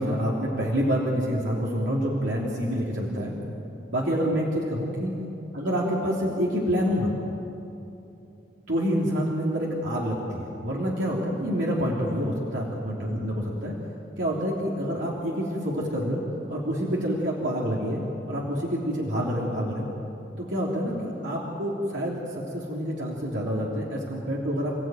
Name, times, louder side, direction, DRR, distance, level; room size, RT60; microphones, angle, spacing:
voice 1, 0.0-3.3 3.9-5.1 5.5-7.1 8.7-13.7 14.2-16.2 16.5-18.0 18.3-19.9 20.4-21.0 21.2-24.7, equal, 75° right, -4 dB, 3.3 m, -27 dB
29.0 x 16.0 x 9.2 m, 2.9 s
head